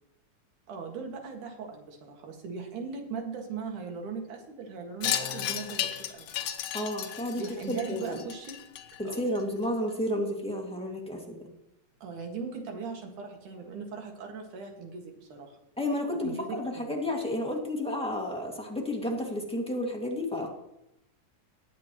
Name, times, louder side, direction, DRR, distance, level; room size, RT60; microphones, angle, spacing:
voice 1, 0.7-6.3 7.4-8.5 9.0-9.3 12.0-15.5 16.2-17.0, right 5 dB, 85° right, 2 dB, 3.4 m, -39 dB
Wind chime, 5.0-9.6, left 11 dB, 70° left, 1.9 m, -34 dB
sound 1, 5.0-6.9, left 5 dB, 25° left, 1.8 m, -47 dB
voice 2, 6.7-7.4 7.7-8.2 9.0-11.4 15.8-20.5, left 1 dB, 5° left, -1 dB, 1.3 m, -31 dB
19.0 x 8.4 x 3.1 m, 0.84 s
omnidirectional pair, 3.5 m